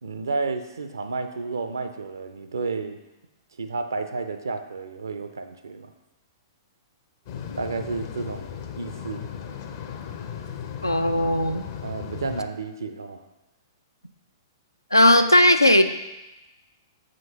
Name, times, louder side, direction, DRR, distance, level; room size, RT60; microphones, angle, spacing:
voice 1, 0.0-3.0 3.6-5.9 7.6-9.2 11.8-13.2, right 4 dB, 70° right, 8 dB, 0.5 m, -31 dB
sound 1, 7.3-12.4, left 8 dB, 45° left, 0.6 m, -36 dB
voice 2, 10.8-11.6 14.9-15.8, left 1 dB, 90° left, 8 dB, 0.4 m, -17 dB
7.4 x 5.1 x 2.8 m, 1.0 s
figure-of-eight pair, 110°, 2 cm